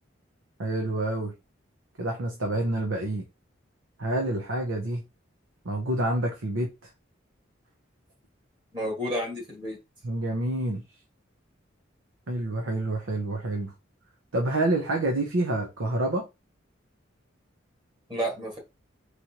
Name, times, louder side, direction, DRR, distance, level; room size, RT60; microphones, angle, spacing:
voice 1, 0.6-1.3 2.0-3.2 4.0-5.0 5.6-6.7 10.0-10.8 12.3-13.7 14.3-16.3, right 1 dB, 85° right, 0.8 m, -28 dB
voice 2, 8.7-9.8 18.1-18.6, equal, 25° right, 1.7 m, -31 dB
4.2 x 3.2 x 2.9 m
head